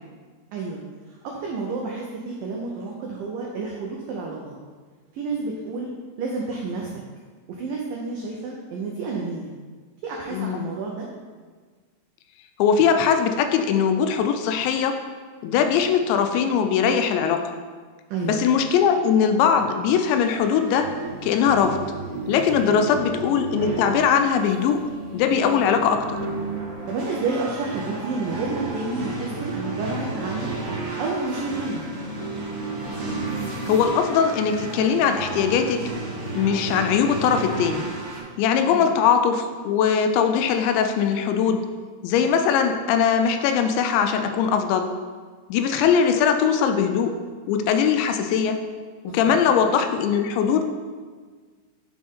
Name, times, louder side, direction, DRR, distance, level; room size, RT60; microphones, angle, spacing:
voice 1, 0.5-0.8 1.1-2.1 2.4-4.5 5.1-5.9 6.2-6.9 7.6-9.5 10.0-11.1 18.1-18.4 22.7-22.9 26.9-30.5 31.0-31.8 38.7-38.9 49.1-49.4, right 3 dB, 90° right, -2 dB, 1.9 m, -30 dB
voice 2, 10.3-10.7 12.6-15.0 15.4-17.5 18.2-20.9 21.2-21.8 22.3-24.9 25.1-26.2 33.7-35.8 36.3-37.9 38.4-41.6 42.0-44.9 45.5-47.1 47.5-48.6 49.0-50.6, left 7 dB, 90° left, 7 dB, 3.0 m, -21 dB
sound 1, 20.2-38.2, right 3 dB, 50° right, 3.0 m, -32 dB
10.5 x 5.1 x 3.7 m, 1.5 s
omnidirectional pair, 5.1 m